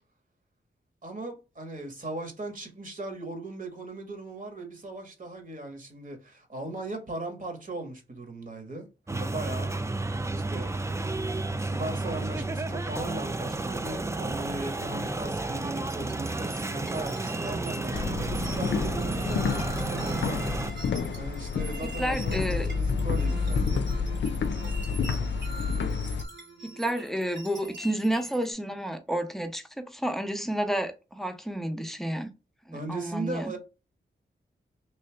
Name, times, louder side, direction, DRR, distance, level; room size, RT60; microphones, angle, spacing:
voice 1, 1.0-9.7 10.3-10.7 11.4-20.4 21.1-23.8 32.7-33.6, right 2 dB, 45° right, 1.5 m, -38 dB
sound 1, 9.1-20.7, right 2 dB, 15° right, 0.4 m, -32 dB
Timex Seq, 15.9-28.5, right 2 dB, 75° right, 2.2 m, -43 dB
sound 2, 17.9-26.2, left 5 dB, 70° left, 0.5 m, -29 dB
voice 2, 21.8-22.7 26.6-32.3 32.7-33.5, right 1 dB, ahead, 0.8 m, -30 dB
3.3 x 2.7 x 3.3 m
cardioid pair, 50°, 19 cm